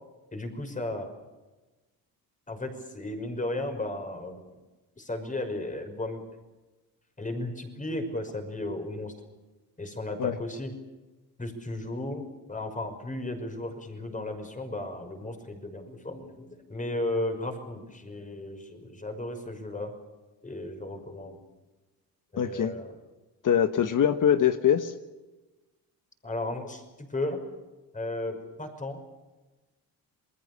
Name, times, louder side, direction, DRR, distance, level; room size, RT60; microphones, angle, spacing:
voice 1, 0.3-1.1 2.5-4.4 5.0-6.2 7.2-9.1 9.8-10.7 11.4-19.9 20.4-21.4 22.3-22.9 26.2-27.4 27.9-29.0, left 1 dB, 20° left, 6 dB, 5.8 m, -35 dB
voice 2, 22.4-22.7 23.4-24.9, left 9 dB, 50° left, 9 dB, 1.4 m, -23 dB
28.5 x 21.0 x 6.9 m, 1.1 s
cardioid pair, 105°, 39 cm